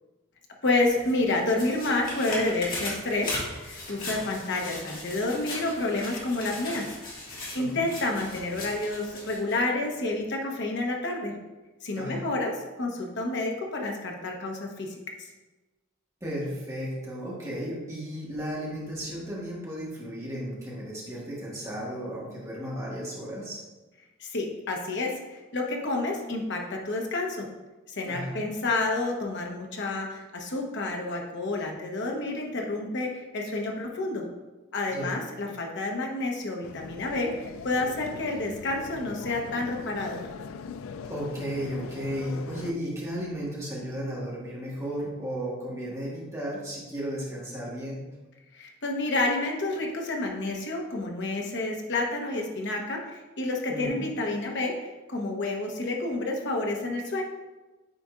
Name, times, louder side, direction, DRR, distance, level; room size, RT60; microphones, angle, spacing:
voice 1, 0.6-6.9 7.5-11.3 11.8-15.0 24.2-27.5 27.9-34.3 34.7-40.2 48.5-57.2, left 2 dB, 60° left, 1 dB, 1.0 m, -29 dB
sound 1, 0.9-9.6 10.0-10.1, left 2 dB, 45° left, 2.0 m, -38 dB
voice 2, 16.2-23.6 28.0-28.4 34.9-35.2 41.1-48.1 53.7-54.1, equal, 15° right, -6 dB, 1.8 m, -34 dB
sound 2, 36.6-42.7, left 5 dB, 85° left, 0.3 m, -41 dB
9.2 x 4.2 x 2.5 m, 1.1 s
head